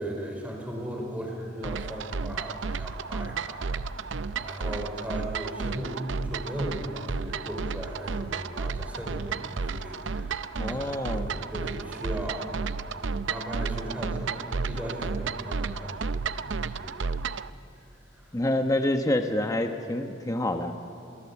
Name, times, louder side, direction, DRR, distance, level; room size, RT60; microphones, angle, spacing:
voice 1, 0.0-4.1 4.3-12.6 12.9-17.2 18.1-18.4, right 1 dB, 10° right, 0 dB, 4.9 m, -37 dB
sound 1, 1.6-17.5, right 4 dB, 75° right, 0.6 m, -33 dB
voice 2, 10.6-11.3 18.3-20.7, left 1 dB, 20° left, 5 dB, 1.1 m, -27 dB
28.5 x 23.0 x 7.3 m, 2.6 s
head